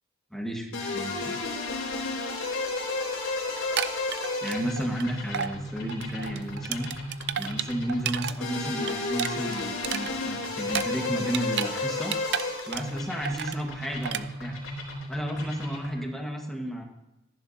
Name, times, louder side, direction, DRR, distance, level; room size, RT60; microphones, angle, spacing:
voice 1, 0.3-1.4 4.4-6.9 7.3-12.1 12.7-14.6 15.1-16.8, equal, ahead, 1 dB, 1.5 m, -33 dB
sound 1, 0.7-16.1, left 2 dB, 75° left, 3.8 m, -33 dB
sound 2, 3.6-5.0 5.3-5.5 5.9-8.3 8.7-11.7 12.0-13.0 13.2-13.6 14.0-14.2, right 9 dB, 55° right, 0.4 m, -32 dB
14.5 x 10.5 x 2.8 m, 0.96 s
head